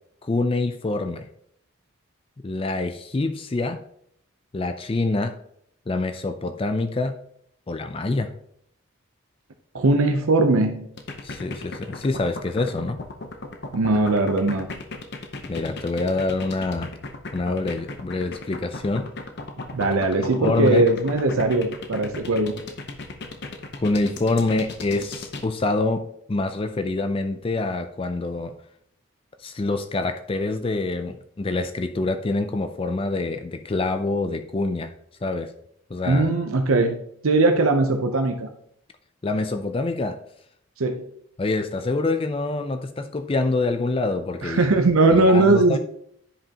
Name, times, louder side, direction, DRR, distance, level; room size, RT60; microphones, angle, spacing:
voice 1, 0.2-1.3 2.4-3.8 4.5-5.4 5.9-7.2 7.7-8.3 11.2-13.0 15.4-16.9 17.3-19.1 20.4-20.8 23.8-28.5 29.4-34.9 35.2-35.5 35.9-36.3 39.2-40.2 41.4-44.8 45.1-45.8, left 2 dB, 25° left, 9 dB, 0.4 m, -26 dB
voice 2, 9.7-10.9 13.7-14.7 19.7-22.5 36.1-37.0 37.2-38.5 40.8-41.0 44.4-45.8, right 2 dB, 80° right, 5 dB, 0.6 m, -20 dB
sound 1, 11.0-25.5, left 3 dB, 50° left, 0.8 m, -36 dB
9.9 x 5.3 x 2.8 m, 0.70 s
head